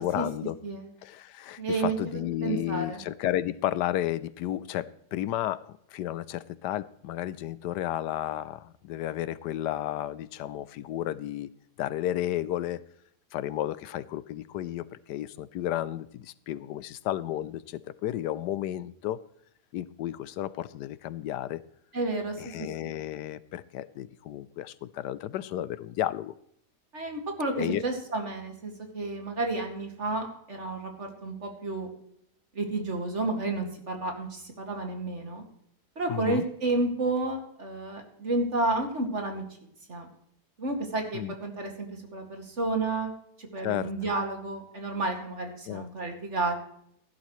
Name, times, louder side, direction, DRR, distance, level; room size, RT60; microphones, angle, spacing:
voice 1, 0.0-0.6 1.0-11.5 11.8-12.8 13.3-19.2 19.7-21.6 22.4-26.3 27.6-27.8 36.1-36.4 41.1-41.3 43.6-43.9 45.7-45.9, left 13 dB, 85° left, 17 dB, 1.2 m, -32 dB
voice 2, 1.6-2.0 2.4-3.1 21.9-22.9 26.9-27.5 27.8-31.9 32.5-35.4 36.0-39.4 39.9-40.1 40.6-43.1 43.4-46.6, right 2 dB, 45° right, 3 dB, 2.4 m, -31 dB
15.5 x 12.0 x 3.1 m, 0.70 s
omnidirectional pair, 1.8 m